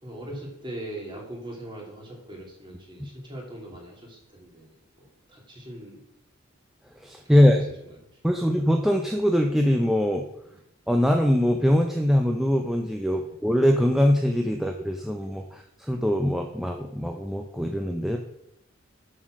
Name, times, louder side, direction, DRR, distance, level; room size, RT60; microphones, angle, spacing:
voice 1, 0.0-4.7 5.3-6.0 7.3-7.6 7.9-8.0 10.5-10.6 13.1-13.3, right 1 dB, 25° right, -2 dB, 2.7 m, -40 dB
voice 2, 7.0-7.6 8.2-10.2 10.9-18.2, equal, ahead, 2 dB, 0.6 m, -22 dB
7.6 x 6.5 x 6.2 m, 0.79 s
head